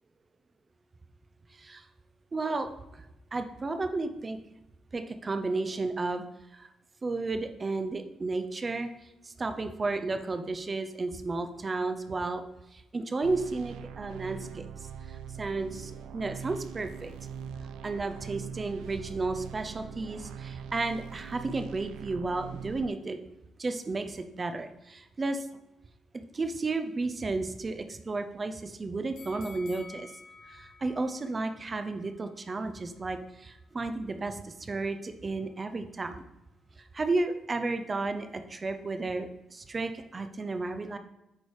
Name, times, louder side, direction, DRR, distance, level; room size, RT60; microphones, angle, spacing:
voice 1, 1.5-1.8 2.3-3.1 3.3-4.4 4.9-6.2 6.5-6.7 7.0-8.9 9.2-12.4 12.7-14.7 15.1-17.1 17.8-23.2 23.6-25.5 26.3-30.1 30.5-36.2 36.9-41.0, right 3 dB, 30° right, 8 dB, 0.6 m, -33 dB
sound 1, 13.2-22.9, right 8 dB, 90° right, 0.4 m, -42 dB
sound 2, 29.2-32.3 32.7-32.8, left 4 dB, 70° left, 0.9 m, -51 dB
8.4 x 3.3 x 4.7 m, 0.95 s
cardioid pair, 90°, 0 cm